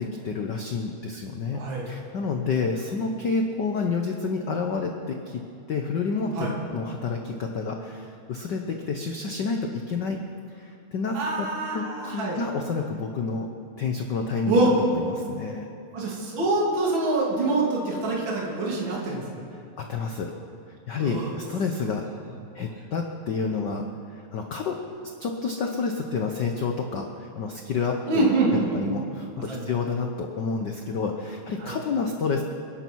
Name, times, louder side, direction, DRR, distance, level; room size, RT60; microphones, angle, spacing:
voice 1, 0.0-1.6 1.9-5.4 5.7-10.2 10.5-11.5 11.7-13.5 13.8-15.7 19.8-20.3 20.9-22.1 22.5-24.8 25.2-32.4, left 4 dB, 85° left, 3 dB, 0.9 m, -29 dB
voice 2, 1.5-1.9 6.3-6.5 11.1-12.4 14.5-14.7 15.9-19.4 20.9-21.3 28.1-28.9 29.5-29.7 31.6-31.7, right 2 dB, 45° right, -4 dB, 3.2 m, -25 dB
28.0 x 11.5 x 4.6 m, 2.5 s
omnidirectional pair, 3.3 m